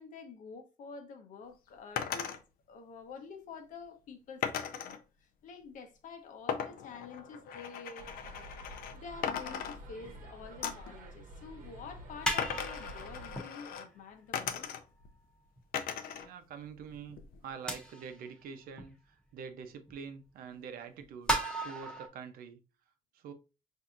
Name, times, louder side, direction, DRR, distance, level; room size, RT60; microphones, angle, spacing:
voice 1, 0.0-2.3 2.7-5.0 5.4-8.1 8.9-14.7, left 5 dB, 60° left, 0.8 m, -48 dB
sound 1, 2.0-2.4 4.4-5.0 6.5-9.0 9.2-10.2 10.6-10.9 12.4-13.9 14.3-15.1 15.7-16.3 16.6-17.4, left 8 dB, 90° left, 0.5 m, -38 dB
sound 2, 8.0-13.4, right 1 dB, 65° right, 1.0 m, -49 dB
sound 3, 10.0-10.1 11.2-11.3 12.2-13.9 14.5-14.6 15.6-15.7 16.7-16.8 17.7-18.3 18.8-18.9 19.9-20.0 21.0-22.1, right 1 dB, 5° left, 0.8 m, -35 dB
voice 2, 16.2-17.2 17.4-21.4 21.6-22.6 23.1-23.3, right 6 dB, 90° right, 0.7 m, -45 dB
5.8 x 2.7 x 2.5 m
cardioid pair, 165°, 15 cm